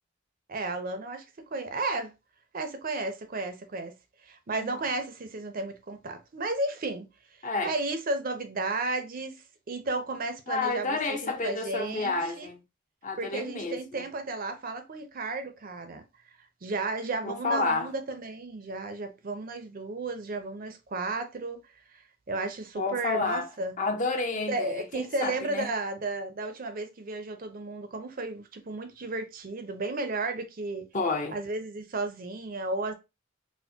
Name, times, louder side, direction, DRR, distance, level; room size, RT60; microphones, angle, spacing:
voice 1, 0.5-1.2 1.5-2.1 2.5-3.9 4.2-7.1 7.6-9.4 9.7-12.5 13.2-16.0 16.6-21.6 21.9-22.0 22.3-23.7 24.5-30.9 31.3-32.9, right 2 dB, 45° right, 0.5 m, -33 dB
voice 2, 7.4-7.7 10.5-12.6 13.0-14.0 17.2-17.9 22.8-23.5 23.8-25.7 30.9-31.4, left 3 dB, 40° left, 0.6 m, -30 dB
4.2 x 2.1 x 2.7 m
head